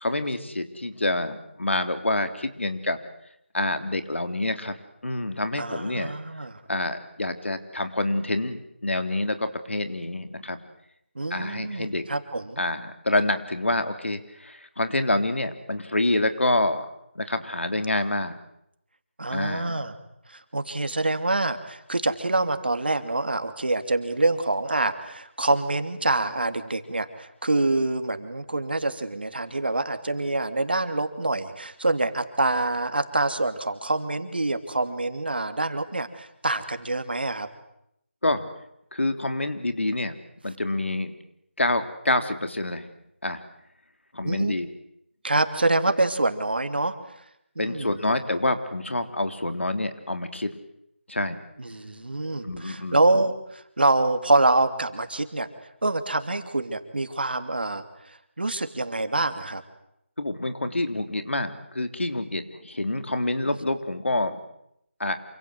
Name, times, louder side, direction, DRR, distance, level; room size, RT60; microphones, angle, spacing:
voice 1, 0.0-3.0 3.5-4.8 5.0-6.1 6.7-10.6 11.3-12.0 12.6-16.9 17.2-18.4 19.3-19.8 38.2-38.4 38.9-40.1 40.4-41.1 41.6-42.9 43.2-43.4 44.1-44.7 47.6-50.5 51.1-51.4 52.4-53.0 60.2-64.4 65.0-65.2, left 2 dB, 75° left, 8 dB, 3.5 m, -27 dB
voice 2, 5.5-6.6 11.1-12.6 19.2-19.9 20.3-37.5 44.2-44.5 45.2-46.9 47.6-47.9 51.6-55.5 55.8-59.6 63.4-63.5, right 2 dB, 55° right, 8 dB, 2.9 m, -26 dB
28.0 x 26.5 x 8.0 m, 0.78 s
figure-of-eight pair, 180°, 7 cm